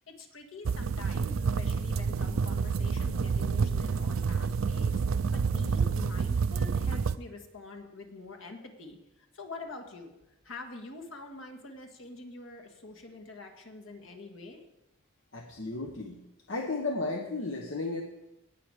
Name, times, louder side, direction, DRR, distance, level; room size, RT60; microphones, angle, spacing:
voice 1, 0.1-10.1 10.4-14.6, left 3 dB, 85° left, 4 dB, 1.8 m, -46 dB
sound 1, 0.6-7.1, right 5 dB, 90° right, 0.4 m, -28 dB
voice 2, 15.3-16.2 16.5-18.0, left 3 dB, 70° left, 2 dB, 1.0 m, -34 dB
18.0 x 6.1 x 4.9 m, 0.94 s
head